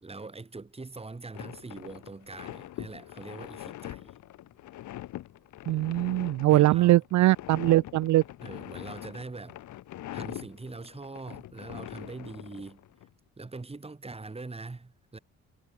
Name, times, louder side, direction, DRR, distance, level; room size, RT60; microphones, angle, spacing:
voice 1, 0.0-4.2 6.5-7.0 8.4-9.6 10.1-12.8 13.4-15.2, right 3 dB, 20° right, 2.7 m, -42 dB
sound 1, 1.3-13.1, left 14 dB, 75° left, 1.1 m, -43 dB
voice 2, 5.7-8.2, right 17 dB, 70° right, 0.5 m, -22 dB
cardioid pair, 90°, 30 cm